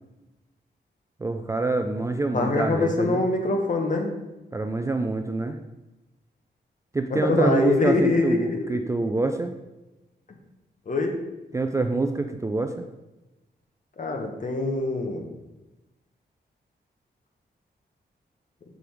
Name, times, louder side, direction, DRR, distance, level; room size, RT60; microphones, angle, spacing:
voice 1, 1.2-3.2 4.5-5.6 6.9-9.5 11.5-12.9, right 2 dB, 15° right, 6 dB, 0.3 m, -26 dB
voice 2, 2.3-4.1 7.1-8.8 10.3-10.4 10.9-11.2 14.0-15.3, left 2 dB, 45° left, 3 dB, 1.0 m, -24 dB
5.3 x 4.9 x 4.6 m, 1.0 s
wide cardioid pair, 145°, 18 cm